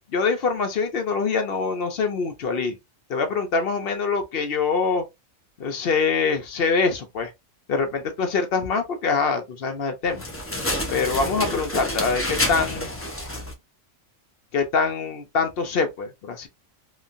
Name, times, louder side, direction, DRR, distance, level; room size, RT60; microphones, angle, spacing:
voice 1, 0.1-2.8 3.1-5.0 5.6-7.3 7.7-10.3 10.9-12.9 14.5-16.5, left 4 dB, 55° left, 0.8 m, -24 dB
sound 1, 10.0-13.5, left 1 dB, 20° left, 0.4 m, -28 dB
3.0 x 2.3 x 2.5 m
omnidirectional pair, 1.4 m